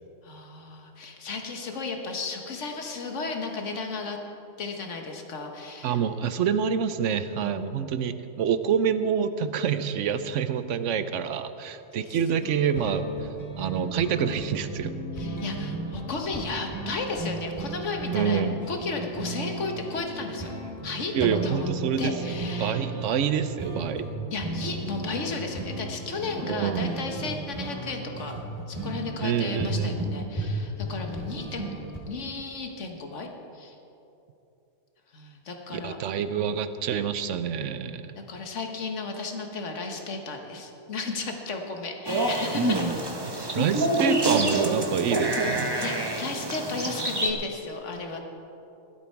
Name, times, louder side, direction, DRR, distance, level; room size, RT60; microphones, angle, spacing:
voice 1, 0.2-4.2 4.6-6.0 7.4-8.0 12.4-12.5 15.2-20.5 20.8-21.7 22.0-22.8 24.3-28.3 28.7-31.8 32.1-33.3 33.5-33.8 35.1-36.0 37.7-37.9 38.3-43.1 44.0-44.1 45.8-48.2, left 3 dB, 80° left, 3 dB, 1.7 m, -34 dB
voice 2, 5.8-13.3 13.6-14.9 18.1-18.6 21.1-24.1 26.4-26.9 29.2-30.1 35.7-38.1 43.2-45.8, right 7 dB, 80° right, 11 dB, 1.0 m, -27 dB
sound 1, 12.4-32.0, right 2 dB, 15° left, 3.3 m, -35 dB
sound 2, 42.0-47.3, right 2 dB, 20° right, 1.0 m, -26 dB
16.0 x 12.0 x 4.6 m, 2.8 s
omnidirectional pair, 1.2 m